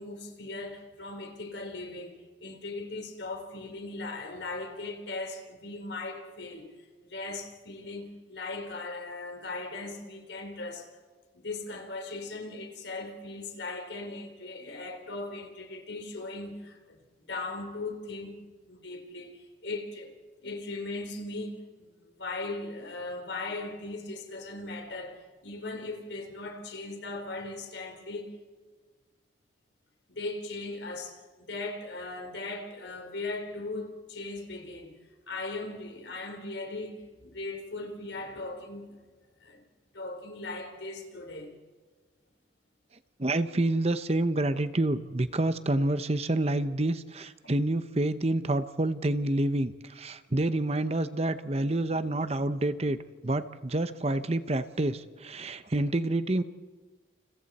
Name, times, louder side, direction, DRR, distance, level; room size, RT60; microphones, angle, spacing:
voice 1, 0.0-6.7 7.1-10.9 11.3-17.0 17.3-18.4 18.7-20.1 20.4-21.9 22.2-28.3 30.1-35.0 35.3-38.9 39.4-39.6 39.9-41.6, left 2 dB, 70° left, 4.2 m, -38 dB
voice 2, 43.2-53.0 53.2-56.4, right 2 dB, 35° right, 0.9 m, -28 dB
29.5 x 29.5 x 4.3 m
head